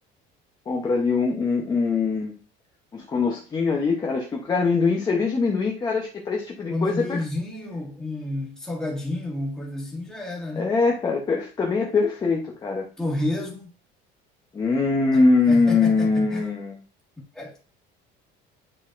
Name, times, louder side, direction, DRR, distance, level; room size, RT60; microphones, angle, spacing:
voice 1, 0.7-2.4 2.9-7.2 10.6-12.9 14.5-16.7, left 4 dB, 20° left, 0.8 m, -22 dB
voice 2, 6.7-10.7 13.0-13.7 15.1-16.5 17.3-17.6, left 1 dB, 5° left, 1.6 m, -30 dB
9.9 x 4.0 x 2.5 m
cardioid pair, 160°, 20 cm